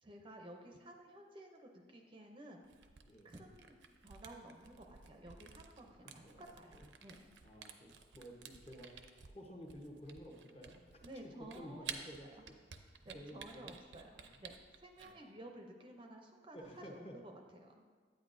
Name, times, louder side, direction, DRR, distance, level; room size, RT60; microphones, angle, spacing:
voice 1, 0.0-2.7 3.2-7.3 11.0-12.1 12.3-12.4 13.0-14.5 14.8-17.8, right 1 dB, 25° right, 3 dB, 0.6 m, -54 dB
Camera, 2.6-15.1, right 7 dB, 75° right, 0.6 m, -53 dB
voice 2, 5.8-6.9 7.4-8.9 9.3-11.0 11.5-12.3 13.1-13.7 14.1-14.4 15.0-15.1 16.5-17.1, equal, 35° left, 0 dB, 1.0 m, -53 dB
10.5 x 8.9 x 2.6 m, 1.5 s
head